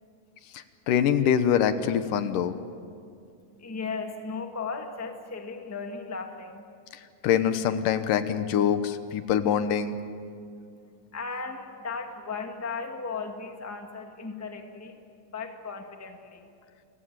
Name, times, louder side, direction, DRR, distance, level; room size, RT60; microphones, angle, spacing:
voice 1, 0.5-2.5 7.2-10.0, left 9 dB, 80° left, 10 dB, 2.6 m, -24 dB
voice 2, 3.4-6.6 10.8-15.0 15.3-16.5, left 4 dB, 10° left, 4 dB, 1.1 m, -36 dB
29.0 x 17.5 x 9.5 m, 2.5 s
omnidirectional pair, 3.8 m